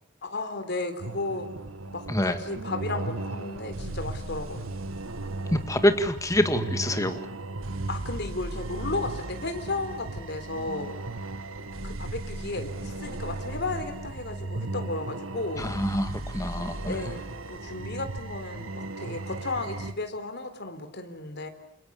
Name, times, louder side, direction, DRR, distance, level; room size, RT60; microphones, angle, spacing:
voice 1, 0.2-1.5 1.9-4.7 7.9-11.0 11.8-15.7 16.9-21.5, left 2 dB, 55° left, 7 dB, 3.9 m, -34 dB
sound 1, 1.0-19.9, right 2 dB, 80° right, 1.9 m, -36 dB
voice 2, 2.1-2.4 5.5-7.3 15.6-17.0, left 1 dB, 15° left, 8 dB, 1.8 m, -26 dB
30.0 x 28.0 x 7.1 m, 0.71 s
head